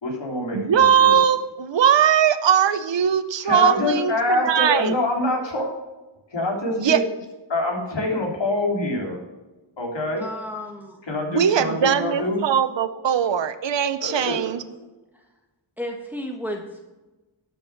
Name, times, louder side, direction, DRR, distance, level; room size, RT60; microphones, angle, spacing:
voice 1, 0.0-1.2 3.4-5.7 6.3-7.0 7.5-9.2 9.8-10.2 11.1-12.4 14.0-14.4, left 2 dB, 65° left, -1 dB, 3.5 m, -25 dB
voice 2, 0.5-4.9 6.8-7.0 11.3-14.6, right 8 dB, 70° right, 12 dB, 0.8 m, -20 dB
voice 3, 10.2-11.0 15.1-15.2 15.8-16.9, left 1 dB, 5° right, 1 dB, 1.4 m, -33 dB
12.0 x 6.9 x 6.0 m, 1.1 s
wide cardioid pair, 90°, 46 cm